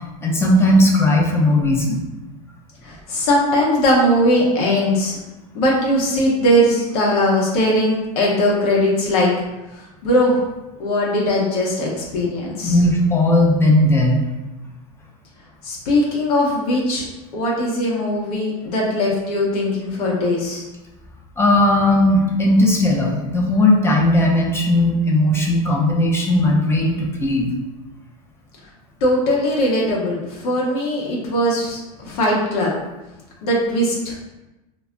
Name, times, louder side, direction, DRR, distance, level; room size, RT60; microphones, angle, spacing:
voice 1, 0.2-2.1 12.6-14.2 21.4-27.5, left 1 dB, 10° left, -1 dB, 0.5 m, -17 dB
voice 2, 2.8-5.2 5.5-9.3 9.7-10.4 10.8-12.8 15.6-17.0 17.3-20.6 29.0-32.7 33.4-34.2, equal, 75° left, -3 dB, 0.8 m, -19 dB
2.2 x 2.0 x 3.6 m, 1.0 s
supercardioid pair, 115°, 20 cm